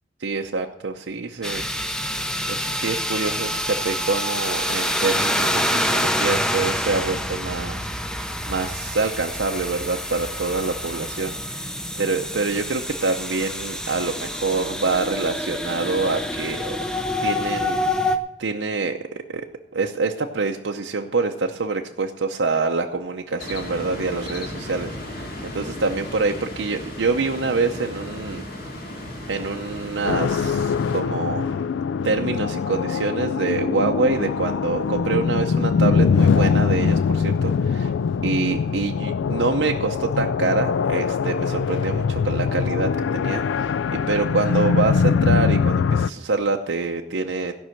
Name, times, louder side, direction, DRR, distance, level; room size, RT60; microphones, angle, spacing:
voice 1, 0.2-1.7 2.5-7.9 8.1-11.7 12.0-16.8 17.2-19.5 19.7-28.4 29.3-31.7 32.0-37.9 38.2-47.5, right 3 dB, 80° right, 2 dB, 0.7 m, -26 dB
sound 1, 1.4-18.2, left 1 dB, 5° left, 0.6 m, -27 dB
sound 2, 23.4-31.0, left 1 dB, 50° left, 2.1 m, -35 dB
sound 3, 30.0-46.1, left 5 dB, 80° left, 0.3 m, -22 dB
16.0 x 5.5 x 7.7 m, 0.88 s
head